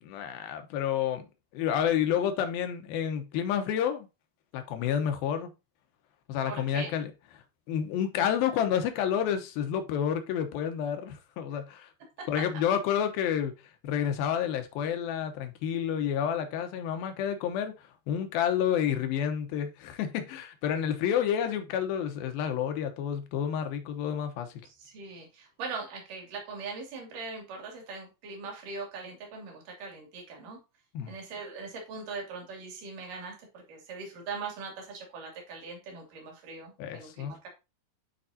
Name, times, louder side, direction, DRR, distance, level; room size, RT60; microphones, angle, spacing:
voice 1, 0.0-1.3 1.5-4.1 4.5-5.5 6.3-7.1 7.7-11.9 12.3-13.5 13.8-17.7 18.1-24.5 30.9-31.1 36.8-37.4, left 9 dB, 75° left, 2.7 m, -29 dB
voice 2, 6.4-6.9 12.2-12.4 24.6-30.6 31.1-37.5, right 4 dB, 60° right, 4.0 m, -41 dB
11.5 x 4.7 x 2.7 m
omnidirectional pair, 4.4 m